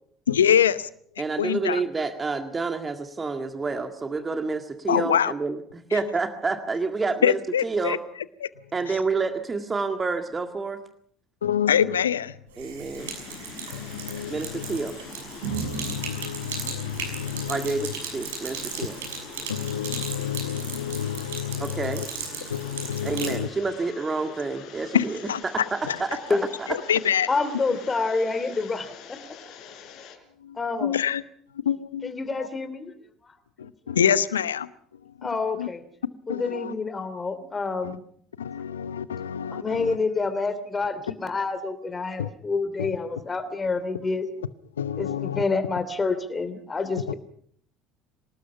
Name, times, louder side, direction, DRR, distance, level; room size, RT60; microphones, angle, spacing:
voice 1, 0.3-0.9 1.4-1.8 4.9-5.3 5.9-6.0 7.2-8.0 8.4-8.5 11.4-12.3 12.6-13.0 13.7-14.8 15.5-17.9 19.5-22.0 22.5-23.5 24.9-25.4 25.9-26.0 26.7-27.3 30.4-31.2 31.6-32.1 32.4-32.5 33.6-34.7 35.6-35.7 36.3-36.7 37.8-38.0 38.4-40.0 42.2-42.3 42.8-42.9 44.8-45.4, left 9 dB, 80° left, 17 dB, 0.8 m, -26 dB
voice 2, 1.2-8.0 8.7-10.8 12.6-13.1 14.3-15.0 17.5-19.0 21.6-22.0 23.0-25.2 25.4-26.7, right 4 dB, 25° right, 6 dB, 1.9 m, -29 dB
Sink (filling or washing), 12.5-23.4, right 5 dB, 75° right, 6.8 m, -36 dB
sound 1, 13.0-30.2, left 7 dB, 55° left, 5.2 m, -44 dB
voice 3, 27.3-29.2 30.5-30.9 32.0-32.9 35.2-35.8 36.3-38.0 39.5-44.3 45.0-47.1, left 4 dB, 25° left, 10 dB, 3.0 m, -28 dB
26.0 x 19.0 x 5.8 m, 0.62 s
figure-of-eight pair, 65°, 0 cm